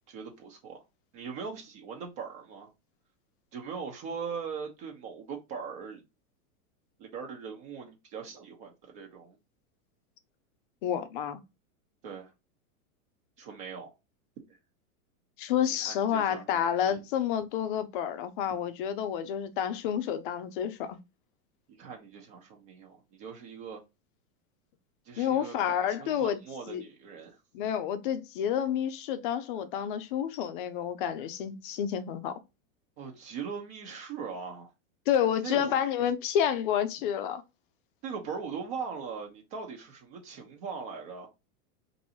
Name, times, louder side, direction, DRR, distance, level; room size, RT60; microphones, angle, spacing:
voice 1, 0.1-0.8 1.1-2.7 3.5-6.0 7.0-9.4 12.0-12.3 13.4-13.9 15.8-16.6 21.8-23.8 25.0-27.4 33.0-34.7 35.4-35.8 38.0-41.3, right 6 dB, 40° right, 0.9 m, -40 dB
voice 2, 10.8-11.4 15.4-21.0 25.2-26.4 26.7-26.8 27.5-32.4 35.1-37.4, left 9 dB, 40° left, 0.5 m, -29 dB
4.5 x 2.6 x 2.8 m
supercardioid pair, 155°, 44 cm